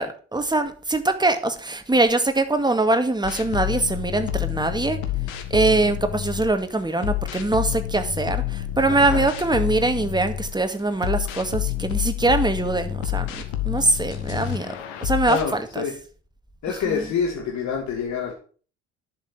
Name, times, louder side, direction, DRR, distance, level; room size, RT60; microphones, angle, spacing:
voice 1, 0.0-5.0 5.5-13.3 13.6-14.7 15.0-15.8 16.9-17.0, right 2 dB, 10° right, 7 dB, 2.1 m, -23 dB
sound 1, 3.2-6.6 7.0-10.6 11.0-15.5, left 12 dB, 75° left, 1.7 m, -28 dB
voice 2, 8.9-9.3 15.3-16.0 16.6-18.3, left 6 dB, 55° left, 2 dB, 2.3 m, -27 dB
10.5 x 7.2 x 6.1 m, 0.40 s
hypercardioid pair, 50°, 33 cm